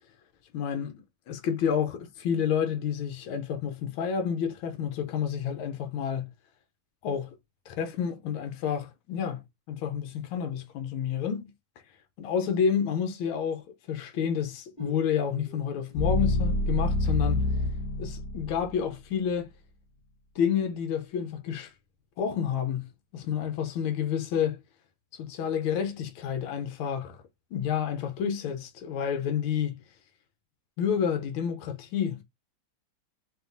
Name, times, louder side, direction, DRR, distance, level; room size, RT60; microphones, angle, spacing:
voice 1, 0.5-6.3 7.0-7.3 7.7-11.5 12.2-17.5 18.0-19.5 20.3-21.7 22.2-24.6 25.1-27.2 27.5-29.8 30.8-32.2, left 8 dB, 75° left, 1.6 m, -29 dB
sound 1, 14.8-18.8, left 2 dB, 20° left, 2.6 m, -28 dB
5.0 x 2.8 x 2.6 m
omnidirectional pair, 2.4 m